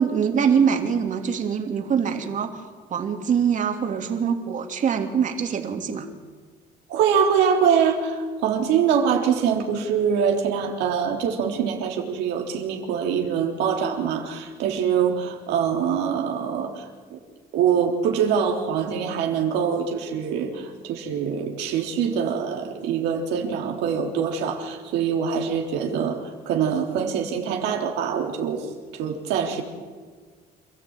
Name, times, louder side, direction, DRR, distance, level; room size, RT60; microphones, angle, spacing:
voice 1, 0.0-6.1, right 7 dB, 50° right, 5 dB, 3.0 m, -24 dB
voice 2, 6.9-16.9 17.1-17.2 17.5-28.6 28.9-29.6, right 7 dB, 90° right, 2 dB, 3.8 m, -24 dB
27.5 x 14.0 x 9.1 m, 1.5 s
cardioid pair, 110°, 17 cm